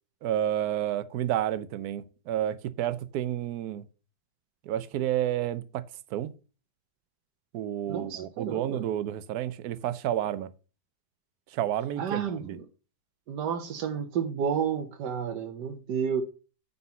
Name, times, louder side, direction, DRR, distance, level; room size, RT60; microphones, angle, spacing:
voice 1, 0.2-3.8 4.7-5.8 6.1-6.3 7.5-10.5 11.5-12.5, right 11 dB, 70° right, 1.1 m, -30 dB
voice 2, 7.9-8.9 12.0-12.7 13.3-16.2, right 7 dB, 90° right, 1.5 m, -31 dB
9.5 x 4.1 x 5.6 m
omnidirectional pair, 1.8 m